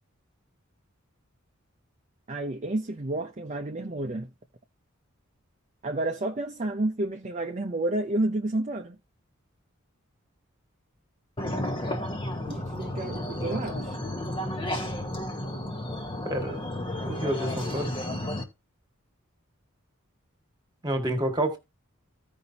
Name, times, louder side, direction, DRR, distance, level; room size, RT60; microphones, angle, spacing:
voice 1, 2.3-4.3 5.8-9.0 12.5-14.0, right 2 dB, 35° right, 0.7 m, -30 dB
sound 1, 11.4-18.4, left 1 dB, 25° left, 1.1 m, -32 dB
voice 2, 16.2-16.6 17.1-17.9 20.8-21.6, right 1 dB, 20° right, 1.8 m, -28 dB
15.5 x 5.3 x 2.8 m
head